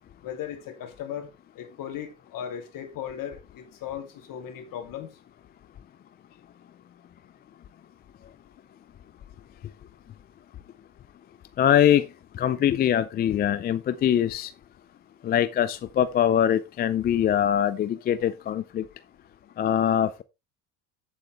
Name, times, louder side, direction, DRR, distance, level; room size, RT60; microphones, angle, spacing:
voice 1, 0.2-5.1, left 9 dB, 50° left, 3.0 m, -37 dB
voice 2, 11.6-12.1 12.4-14.5 15.2-18.8 19.6-20.2, left 10 dB, 25° left, 0.4 m, -23 dB
8.9 x 7.8 x 3.3 m
supercardioid pair, 120°, 44 cm